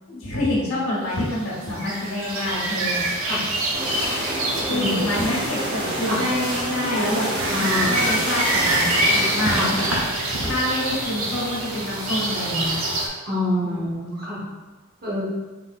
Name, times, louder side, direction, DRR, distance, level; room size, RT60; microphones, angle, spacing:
voice 1, 0.1-3.5 4.6-7.3 7.5-9.9 10.4-12.8 13.6-13.9, left 1 dB, 80° left, -5 dB, 1.3 m, -27 dB
sound 1, 1.2-13.1, right 1 dB, 75° right, 0.8 m, -26 dB
sound 2, 3.7-9.9, right 1 dB, 20° right, 0.6 m, -28 dB
voice 2, 4.7-5.1 6.0-6.2 7.5-8.1 9.5-9.7 13.2-14.4 15.0-15.3, left 1 dB, 45° right, -5 dB, 1.1 m, -26 dB
3.7 x 3.6 x 2.5 m, 1.2 s
head